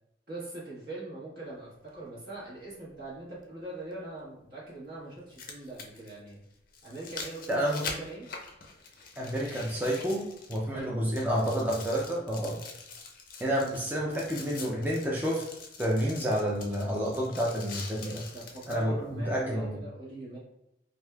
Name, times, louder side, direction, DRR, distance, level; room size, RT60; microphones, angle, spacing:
voice 1, 0.3-6.4 6.8-8.3 10.7-11.1 18.3-20.4, right 2 dB, 60° right, -7 dB, 1.3 m, -42 dB
sound 1, 1.9-2.0 3.9-4.0 5.1-10.8 11.1-18.8 19.4-19.5, left 4 dB, 50° left, 0.5 m, -44 dB
voice 2, 7.5-7.8 9.2-10.2 10.5-12.6 13.4-15.4 15.8-18.2 18.7-19.8, equal, 10° right, -4 dB, 0.4 m, -29 dB
3.4 x 2.6 x 2.3 m, 0.82 s
head